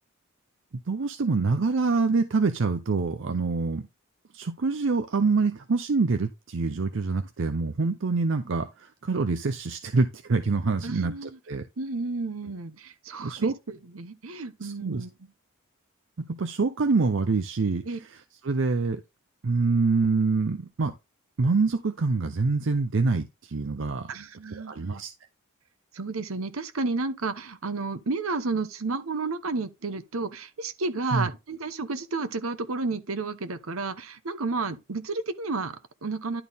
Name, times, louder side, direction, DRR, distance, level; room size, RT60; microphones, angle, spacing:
voice 1, 0.9-3.9 4.3-11.6 13.2-13.5 14.6-15.0 16.3-17.8 18.4-19.0 19.4-20.9 21.4-24.1 24.7-25.1 31.1-31.3, right 4 dB, 60° right, 0.6 m, -25 dB
voice 2, 10.8-11.4 11.8-15.1 17.8-18.0 24.1-25.0 25.9-36.4, right 3 dB, 80° right, 0.9 m, -32 dB
11.0 x 4.2 x 3.5 m
head